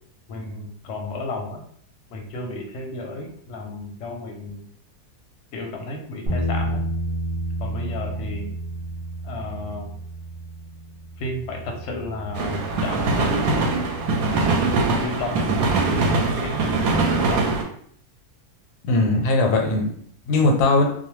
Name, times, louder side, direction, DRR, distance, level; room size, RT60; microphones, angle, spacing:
voice 1, 0.3-1.6 2.1-4.6 5.5-6.8 7.6-8.5 9.2-9.9 11.2-13.7 14.4-14.7 15.0-17.6, left 2 dB, 65° left, 2 dB, 0.8 m, -33 dB
sound 1, 6.3-12.5, right 1 dB, 50° right, 0.4 m, -30 dB
sound 2, 12.3-17.6, right 3 dB, 75° right, 1.0 m, -22 dB
voice 2, 18.8-20.9, left 2 dB, 85° left, 2 dB, 1.1 m, -20 dB
2.5 x 2.0 x 3.0 m, 0.63 s
omnidirectional pair, 1.6 m